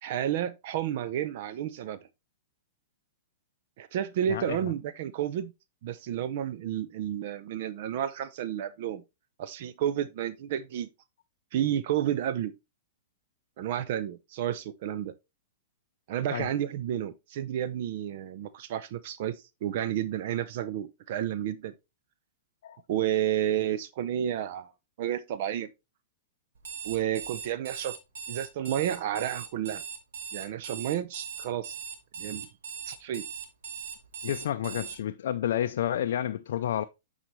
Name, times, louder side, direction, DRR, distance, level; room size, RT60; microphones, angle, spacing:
voice 1, 0.0-2.0 3.8-5.5 5.8-9.0 9.4-10.9 11.5-12.5 13.6-15.1 16.1-19.3 19.6-21.7 22.9-24.7 25.0-25.7 26.8-28.0 28.3-29.8 30.3-31.8 32.2-32.5 32.9-33.2, right 11 dB, 60° right, 0.5 m, -31 dB
voice 2, 4.3-4.7 16.3-16.5 22.6-22.8 34.2-36.8, left 11 dB, 70° left, 0.4 m, -30 dB
Alarm, 26.6-35.0, right 7 dB, 80° right, 1.2 m, -40 dB
8.8 x 4.1 x 3.1 m
hypercardioid pair, 130°, 0 cm